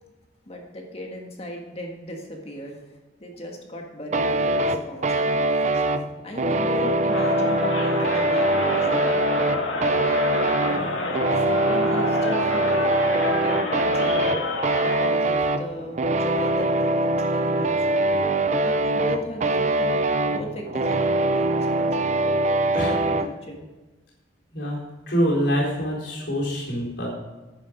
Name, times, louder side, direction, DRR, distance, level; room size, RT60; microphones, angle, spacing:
voice 1, 0.5-2.8 3.2-5.8 6.2-9.2 10.3-14.3 14.8-20.0 20.2-22.4 22.8-23.7, equal, 30° left, 1 dB, 1.8 m, -36 dB
sound 1, 4.1-23.3, right 2 dB, 40° right, 0.5 m, -23 dB
Crowd, 7.0-15.2, left 2 dB, 90° left, 1.9 m, -28 dB
voice 2, 25.1-27.1, equal, 70° left, -4 dB, 4.1 m, -25 dB
11.5 x 9.1 x 5.2 m, 1.2 s
head